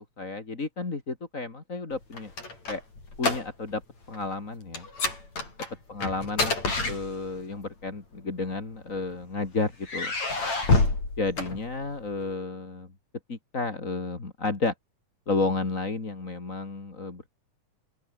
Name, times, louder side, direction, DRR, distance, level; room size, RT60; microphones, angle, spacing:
voice 1, 0.0-2.3 2.7-2.8 3.2-3.8 4.1-4.9 5.9-6.6 6.8-10.1 11.2-12.9 13.3-14.7 15.3-17.3, left 3 dB, 25° left, 3.2 m, -32 dB
sound 1, 1.9-3.8 4.1-4.3 4.7-7.5 8.4-9.3 9.8-12.1, left 3 dB, 65° left, 9.3 m, -28 dB
open air
omnidirectional pair, 3.4 m